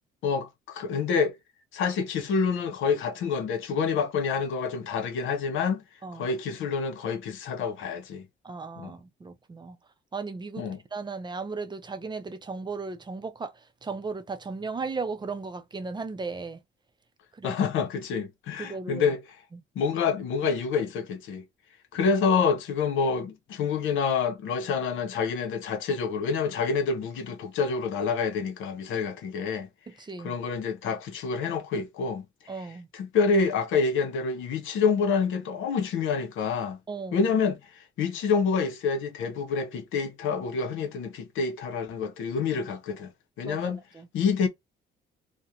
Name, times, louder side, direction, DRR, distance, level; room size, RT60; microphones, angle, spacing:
voice 1, 0.2-1.4 1.7-5.8 6.1-8.3 8.8-8.9 10.6-10.8 17.4-19.2 19.8-21.4 21.9-29.7 30.2-32.2 32.9-36.8 37.1-43.1 43.4-43.8 44.1-44.5, left 5 dB, 85° left, 0.7 m, -27 dB
voice 2, 8.4-9.8 10.1-16.6 17.3-17.6 18.6-19.1 19.5-19.6 29.9-30.4 32.5-32.9 36.9-37.2 43.4-44.1, right 4 dB, 20° right, 0.5 m, -36 dB
2.4 x 2.1 x 2.7 m
cardioid pair, 90°, 20 cm